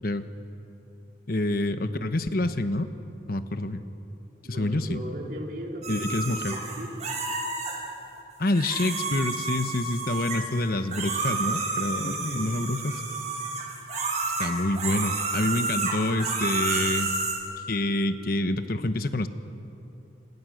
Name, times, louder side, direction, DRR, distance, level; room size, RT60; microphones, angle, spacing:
voice 1, 1.3-2.9 3.3-3.8 4.5-5.0 5.9-6.6 8.4-13.0 14.4-17.1 17.7-19.3, left 2 dB, 55° left, 9 dB, 1.1 m, -27 dB
voice 2, 4.4-6.1 6.5-7.0 12.0-12.5, equal, 55° right, 0 dB, 3.9 m, -37 dB
sound 1, 5.8-7.8 8.5-10.6 10.9-17.3, right 3 dB, 40° right, 5.7 m, -30 dB
30.0 x 27.5 x 6.5 m, 2.9 s
head